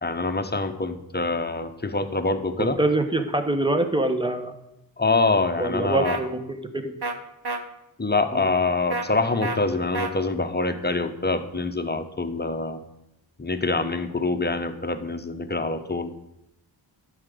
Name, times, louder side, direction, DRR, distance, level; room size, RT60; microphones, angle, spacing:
voice 1, 0.0-2.8 5.0-6.2 8.0-12.8 13.4-16.1, left 3 dB, 20° left, 7 dB, 1.0 m, -25 dB
voice 2, 2.6-4.5 5.6-6.9 8.3-8.4, right 2 dB, 10° right, 8 dB, 1.2 m, -25 dB
sound 1, 6.0-6.2 7.0-7.1 7.4-7.6 8.9-9.1 9.4-9.6 9.9-10.1, right 3 dB, 60° right, 1.2 m, -28 dB
11.5 x 5.1 x 8.4 m, 0.86 s
wide cardioid pair, 80°, 45 cm